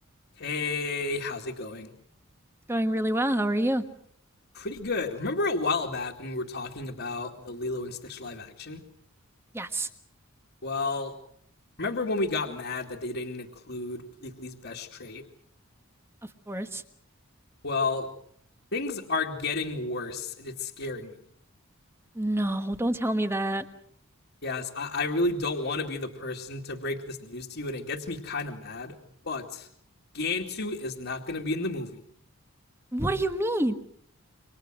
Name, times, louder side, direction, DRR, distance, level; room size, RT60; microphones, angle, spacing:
voice 1, 0.4-1.9 4.5-8.8 10.6-11.1 11.8-15.2 17.6-18.1 18.7-21.2 24.4-29.0 29.2-29.7 30.1-32.0, left 3 dB, 55° left, -2 dB, 2.4 m, -32 dB
voice 2, 2.7-3.8 9.5-9.9 16.2-16.8 22.1-23.7 32.9-33.7, right 1 dB, 10° right, 8 dB, 1.4 m, -27 dB
28.5 x 25.0 x 6.3 m, 0.64 s
head